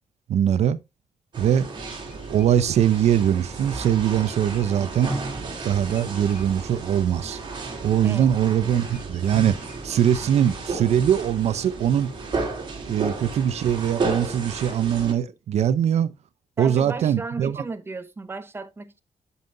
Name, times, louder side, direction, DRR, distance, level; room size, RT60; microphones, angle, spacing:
voice 1, 0.3-0.8 1.4-1.7 2.3-5.2 5.6-7.4 7.8-12.1 12.9-16.1 16.6-17.6, right 9 dB, 70° right, 0.6 m, -22 dB
sound 1, 1.3-15.1, right 3 dB, 45° right, 2.8 m, -33 dB
sound 2, 2.1-5.3 5.8-6.4 8.8-9.8, left 6 dB, 90° left, 2.7 m, -54 dB
voice 2, 16.6-19.0, right 3 dB, 20° right, 0.9 m, -34 dB
13.0 x 5.5 x 2.6 m
wide cardioid pair, 140°, 12 cm